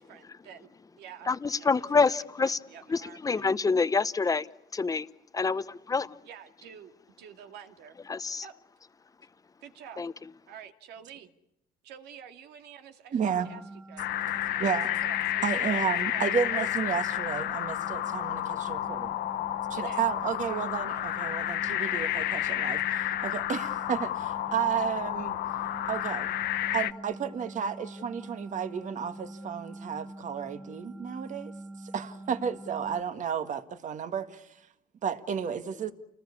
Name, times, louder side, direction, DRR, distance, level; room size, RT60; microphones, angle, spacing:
voice 1, 0.0-3.4 6.2-8.0 8.4-8.5 9.6-10.0 10.5-11.3 11.8-13.6 13.9-16.8 19.7-20.0 20.3-21.0 24.5-24.6, right 8 dB, 80° right, 2.4 m, -49 dB
voice 2, 1.3-2.6 2.9-4.5 4.7-5.1 5.3-6.2 8.1-8.4 10.0-10.1, left 4 dB, 20° left, 0.9 m, -27 dB
voice 3, 13.1-13.5 14.5-15.0 15.4-19.2 19.7-25.4 25.9-26.3 26.7-31.5 31.8-34.5 35.0-35.9, right 7 dB, 45° right, 1.9 m, -32 dB
sound 1, 13.2-33.0, right 1 dB, ahead, 1.1 m, -45 dB
sound 2, 14.0-26.9, left 13 dB, 75° left, 0.9 m, -31 dB
29.5 x 20.0 x 8.5 m
cardioid pair, 110°, 17 cm